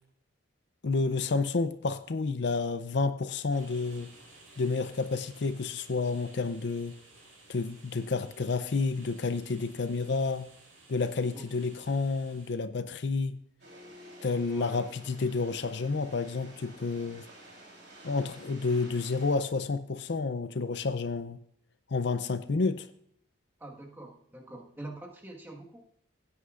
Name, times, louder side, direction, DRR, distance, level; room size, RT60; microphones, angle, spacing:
voice 1, 0.8-4.1 4.6-6.9 7.5-10.5 10.9-13.4 14.2-17.2 18.0-21.4 21.9-22.9, left 4 dB, 55° left, 11 dB, 0.5 m, -30 dB
sound 1, 3.5-12.5, right 2 dB, 85° right, 4.8 m, -56 dB
sound 2, 13.6-19.4, right 1 dB, 55° right, 3.6 m, -51 dB
voice 2, 14.5-14.9 23.6-25.9, right 1 dB, 10° right, 0 dB, 1.5 m, -45 dB
16.5 x 9.6 x 2.5 m, 0.67 s
head